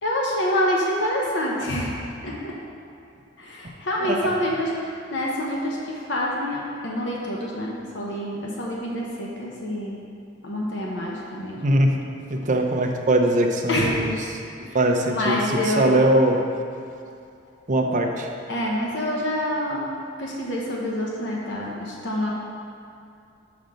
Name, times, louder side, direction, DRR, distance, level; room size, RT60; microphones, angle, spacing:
voice 1, 0.0-2.0 2.2-2.6 3.4-10.0 10.4-11.6 13.7-14.0 14.6-16.0 18.5-19.9 20.2-22.3, left 1 dB, 65° left, -3 dB, 1.0 m, -27 dB
voice 2, 12.3-14.1 14.7-15.4 15.8-16.4 17.7-18.3, right 1 dB, 40° right, 2 dB, 0.7 m, -21 dB
5.9 x 5.2 x 6.4 m, 2.5 s
head